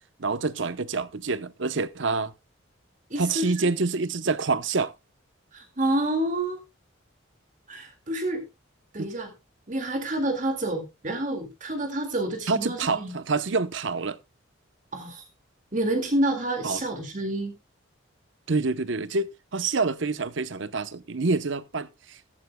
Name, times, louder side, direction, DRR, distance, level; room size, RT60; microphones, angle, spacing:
voice 1, 0.2-2.3 3.2-4.9 9.0-9.1 12.5-14.2 16.6-16.8 18.5-22.4, right 3 dB, 65° right, 0.8 m, -27 dB
voice 2, 3.1-3.7 5.5-6.6 7.7-8.4 8.9-9.3 9.7-13.1 14.9-15.2 15.7-17.5, right 1 dB, 40° right, 2.2 m, -28 dB
14.5 x 13.0 x 2.2 m
head